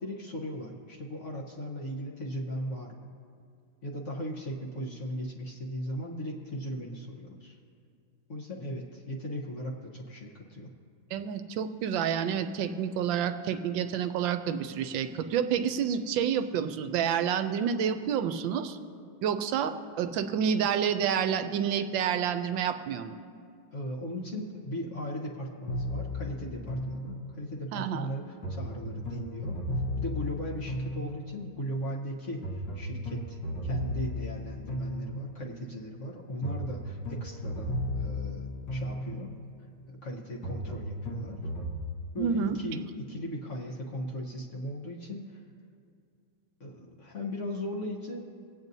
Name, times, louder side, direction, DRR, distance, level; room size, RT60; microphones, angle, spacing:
voice 1, 0.0-3.0 3.8-7.6 8.3-10.7 23.7-29.6 30.0-39.3 39.9-41.4 42.1-45.4 46.6-48.3, equal, 45° left, -1 dB, 1.1 m, -38 dB
voice 2, 11.1-18.8 19.2-23.1 27.7-28.1 42.2-42.6, right 8 dB, 75° right, 9 dB, 1.3 m, -29 dB
sound 1, 25.7-27.6 28.4-31.5 32.4-35.5 36.4-39.5 40.4-41.8, left 1 dB, 65° left, 1.9 m, -35 dB
24.0 x 8.8 x 2.7 m, 2.3 s
omnidirectional pair, 2.2 m